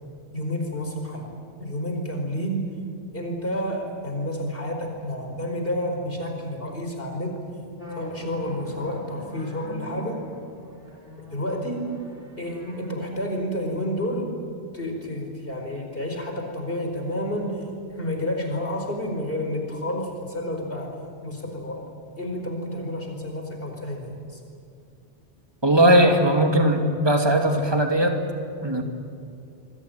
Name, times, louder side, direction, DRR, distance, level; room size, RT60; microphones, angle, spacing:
voice 1, 0.3-1.2 1.6-2.7 3.1-7.4 8.0-10.2 11.2-11.9 12.4-14.4 14.7-17.6 18.0-20.9 21.2-21.8 22.2-24.4, equal, 55° left, 2 dB, 5.1 m, -30 dB
sound 1, 7.8-13.3, equal, 60° right, 5.4 m, -42 dB
voice 2, 25.6-28.2 28.6-28.8, right 1 dB, 20° right, 4 dB, 2.5 m, -19 dB
27.0 x 22.0 x 9.2 m, 2.5 s
omnidirectional pair, 1.1 m